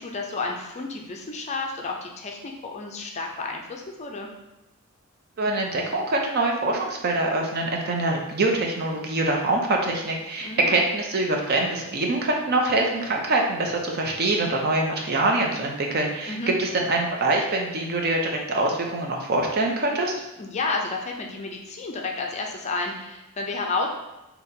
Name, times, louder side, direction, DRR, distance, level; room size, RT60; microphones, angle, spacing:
voice 1, 0.0-4.3 10.4-10.8 16.3-16.5 20.4-23.9, left 3 dB, 30° left, 1 dB, 0.4 m, -31 dB
voice 2, 5.4-20.2, right 2 dB, 45° right, 1 dB, 0.5 m, -24 dB
4.1 x 2.8 x 2.6 m, 0.99 s
head